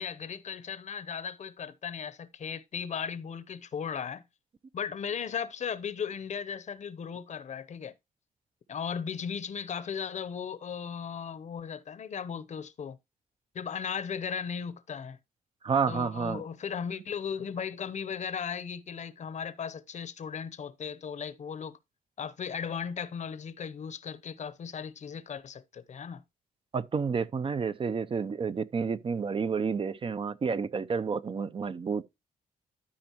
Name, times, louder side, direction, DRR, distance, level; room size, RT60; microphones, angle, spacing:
voice 1, 0.0-4.2 4.7-7.9 8.7-13.0 13.5-15.2 15.9-21.8 22.2-26.2, left 7 dB, 50° left, 0.7 m, -36 dB
voice 2, 15.6-16.4 26.7-32.0, right 5 dB, 35° right, 0.5 m, -30 dB
12.5 x 5.2 x 2.9 m
cardioid pair, 100°, 15 cm